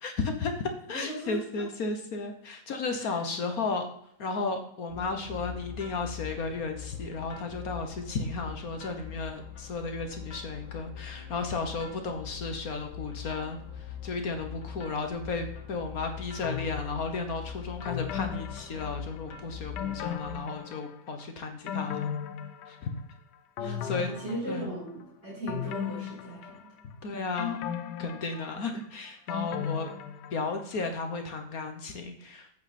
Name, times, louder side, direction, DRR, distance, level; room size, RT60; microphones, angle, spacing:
voice 1, 0.0-3.9 4.2-22.1 22.7-22.9 23.6-24.1 24.5-24.7 27.0-27.6 28.0-29.9 30.3-32.5, left 3 dB, 55° left, 5 dB, 1.5 m, -34 dB
voice 2, 0.9-1.4 3.0-3.2 23.6-26.7, right 1 dB, 35° right, -8 dB, 4.6 m, -38 dB
sound 1, 4.9-20.3, left 8 dB, 90° left, 2.2 m, -42 dB
sound 2, 16.4-17.2 17.8-19.3 19.8-21.1 21.4-23.1 23.6-24.9 25.5-26.9 27.4-30.6 31.0-31.1, left 9 dB, 70° left, 1.2 m, -36 dB
8.3 x 8.3 x 4.3 m, 0.70 s
omnidirectional pair, 2.0 m